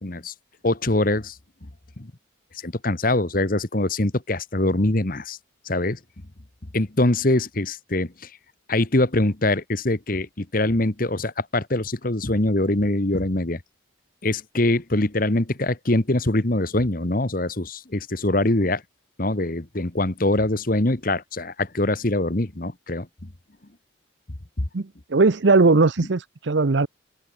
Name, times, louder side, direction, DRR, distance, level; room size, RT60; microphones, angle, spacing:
voice 1, 0.0-0.3 0.6-1.3 2.0-2.1 2.6-5.4 5.6-6.0 6.7-8.3 8.7-13.6 14.2-18.8 19.2-23.1, left 2 dB, 45° left, 1.4 m, -23 dB
voice 2, 24.7-26.9, right 3 dB, 65° right, 0.7 m, -19 dB
head